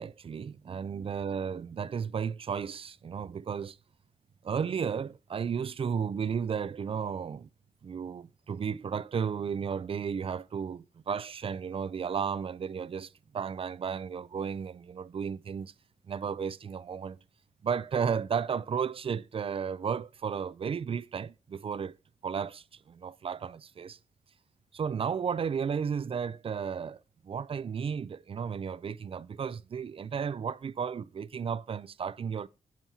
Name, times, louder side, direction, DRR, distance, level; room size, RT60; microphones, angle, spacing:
voice 1, 0.0-3.8 4.4-7.5 7.8-15.7 16.1-17.2 17.6-22.0 22.2-24.0 24.7-32.5, right 7 dB, 40° right, 0.4 m, -33 dB
8.9 x 6.3 x 2.8 m
wide cardioid pair, 100°, 14 cm